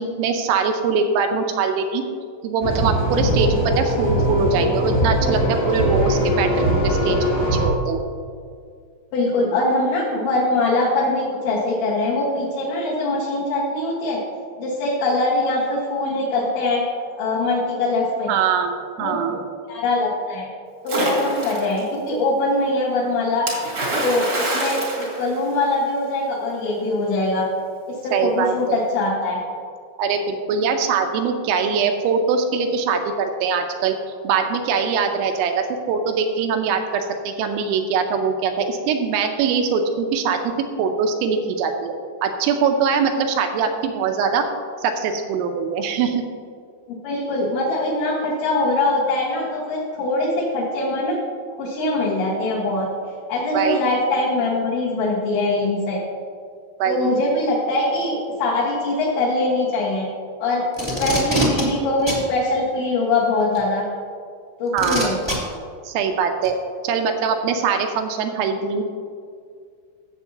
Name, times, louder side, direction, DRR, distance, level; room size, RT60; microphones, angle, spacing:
voice 1, 0.0-2.0 2.4-7.2 7.5-8.0 18.3-19.4 28.1-28.8 30.0-34.0 34.2-40.4 40.8-41.9 42.2-44.4 44.8-46.2 53.5-53.8 56.8-57.1 64.7-65.1 65.8-66.6 66.8-68.8, right 5 dB, 80° right, 5 dB, 2.9 m, -22 dB
sound 1, 2.6-7.7, equal, 85° left, 5.1 m, -21 dB
voice 2, 9.1-14.2 14.6-16.8 17.2-18.3 19.0-19.4 19.7-20.5 20.8-23.5 24.0-27.5 27.9-29.4 46.9-51.2 51.6-52.9 53.3-56.0 56.9-60.1 60.4-63.9 64.6-65.2, left 2 dB, 70° left, -8 dB, 3.5 m, -22 dB
Splash splatter, 20.9-21.8 23.5-25.9, right 2 dB, 50° right, 1.2 m, -25 dB
Packing tape duct tape, 60.7-61.6 62.1-62.2 63.5-63.6 64.8-65.3 66.4-66.5, equal, 10° right, 0.5 m, -24 dB
16.5 x 7.3 x 2.8 m, 2.2 s
omnidirectional pair, 5.7 m